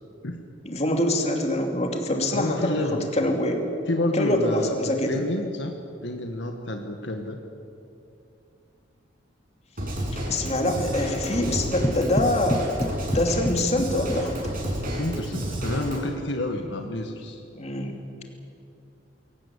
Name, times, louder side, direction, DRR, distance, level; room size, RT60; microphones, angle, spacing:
voice 1, 0.6-3.6 4.1-5.2 10.1-12.7 12.9-14.3 17.5-17.9, left 1 dB, 35° left, 3 dB, 2.7 m, -25 dB
voice 2, 2.3-3.1 3.9-5.7 6.0-7.4 14.9-17.4, left 1 dB, 70° left, 4 dB, 1.7 m, -29 dB
Drum kit / Drum, 9.8-16.0, right 1 dB, 50° right, 6.1 m, -30 dB
sound 1, 11.5-14.7, left 1 dB, 15° left, 0.7 m, -30 dB
22.5 x 18.0 x 8.5 m, 2.6 s
head